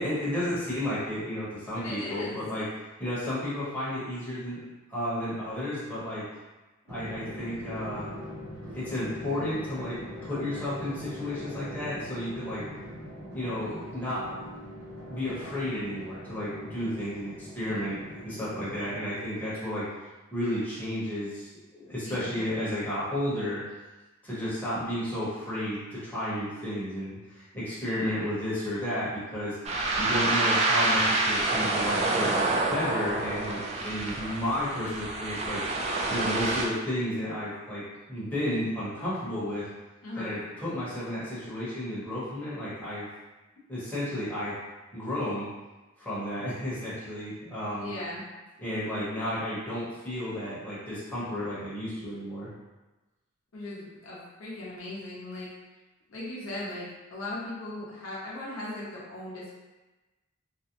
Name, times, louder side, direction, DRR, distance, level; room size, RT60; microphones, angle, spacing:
voice 1, 0.0-2.7 3.0-4.6 4.9-6.2 6.8-8.1 8.7-12.6 13.3-14.5 15.1-19.9 20.3-23.6 24.2-29.6 30.0-35.6 36.1-39.7 40.2-43.1 43.7-44.6 44.9-45.5 46.0-47.9 48.6-52.5, left 1 dB, 10° left, -11 dB, 0.8 m, -32 dB
voice 2, 1.7-2.4 22.1-22.4 40.0-40.4 47.8-48.2 53.5-55.5 56.1-59.5, left 2 dB, 70° left, -6 dB, 0.7 m, -38 dB
Drum, 6.9-19.2, equal, 75° right, 0.9 m, -42 dB
sound 1, 29.6-36.6, right 2 dB, 30° right, 0.3 m, -27 dB
2.5 x 2.0 x 2.8 m, 1.1 s
head